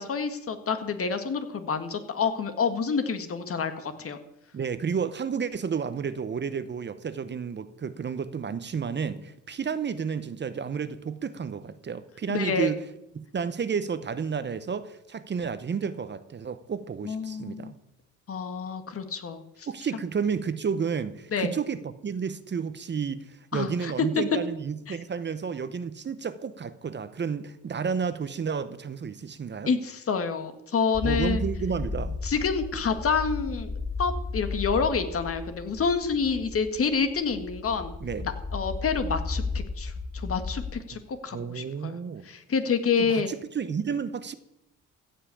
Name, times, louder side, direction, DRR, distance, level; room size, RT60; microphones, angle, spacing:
voice 1, 0.0-4.2 12.3-12.7 17.0-17.7 18.3-19.7 21.3-21.5 23.5-24.2 24.9-25.0 29.7-31.4 32.2-33.7 34.0-37.9 38.2-42.0 42.3-43.3, left 5 dB, 50° left, 1.8 m, -28 dB
voice 2, 4.5-12.8 13.1-17.8 19.7-29.7 31.0-32.2 38.0-38.3 41.3-42.2 43.0-44.3, right 6 dB, 35° right, 0.9 m, -31 dB
sound 1, 30.9-40.8, left 3 dB, 10° left, 0.6 m, -34 dB
15.0 x 5.7 x 8.4 m
cardioid pair, 90°, 30 cm